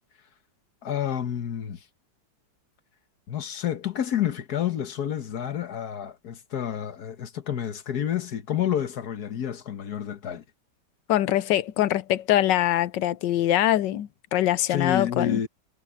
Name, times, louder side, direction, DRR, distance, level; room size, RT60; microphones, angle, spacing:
voice 1, 0.8-1.8 3.3-10.4 14.7-15.5, left 10 dB, 65° left, 1.8 m, -29 dB
voice 2, 11.1-15.4, left 13 dB, 85° left, 1.4 m, -23 dB
omnidirectional pair, 1.9 m